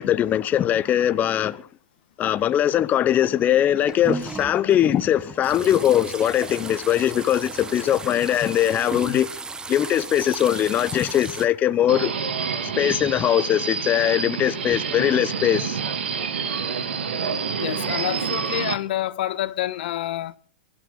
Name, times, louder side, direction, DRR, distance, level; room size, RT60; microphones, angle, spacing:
voice 1, 0.0-1.7 2.2-9.3 9.7-12.1 12.6-15.8, left 11 dB, 30° left, 0.8 m, -21 dB
sound 1, 3.6-11.5, right 4 dB, 15° right, 1.3 m, -35 dB
Subway metro underground, 11.9-18.7, right 6 dB, 85° right, 2.2 m, -28 dB
voice 2, 17.6-20.3, left 14 dB, 70° left, 1.2 m, -28 dB
23.0 x 12.5 x 3.8 m
hypercardioid pair, 115°, 6 cm